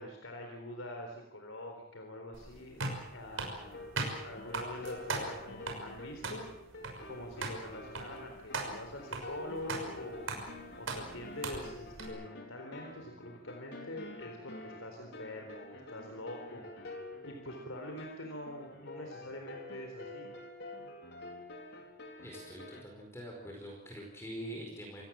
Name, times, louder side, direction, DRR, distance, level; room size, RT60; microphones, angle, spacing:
voice 1, 0.0-2.8 3.1-3.9 4.2-6.5 7.1-10.3 10.8-20.3, left 1 dB, 90° left, 3 dB, 4.0 m, -45 dB
sound 1, 2.3-12.1, right 3 dB, 85° right, 6.1 m, -40 dB
sound 2, 3.6-22.8, left 2 dB, 55° left, 4.3 m, -48 dB
voice 2, 22.2-25.0, equal, 15° left, 0 dB, 5.0 m, -44 dB
28.0 x 18.0 x 7.6 m, 0.84 s
head